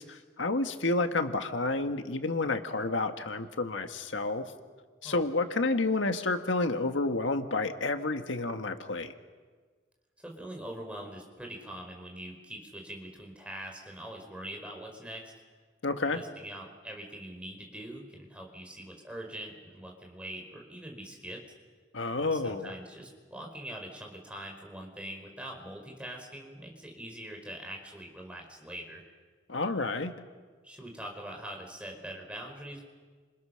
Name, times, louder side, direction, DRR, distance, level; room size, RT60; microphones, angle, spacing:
voice 1, 0.0-4.5 5.0-9.1 15.8-16.2 21.9-22.7 29.5-30.1, left 3 dB, 85° left, 7 dB, 1.6 m, -30 dB
voice 2, 10.2-15.3 16.1-21.4 22.2-29.0 30.6-32.8, right 1 dB, 5° right, 1 dB, 4.7 m, -43 dB
30.0 x 27.5 x 6.5 m, 1.5 s
head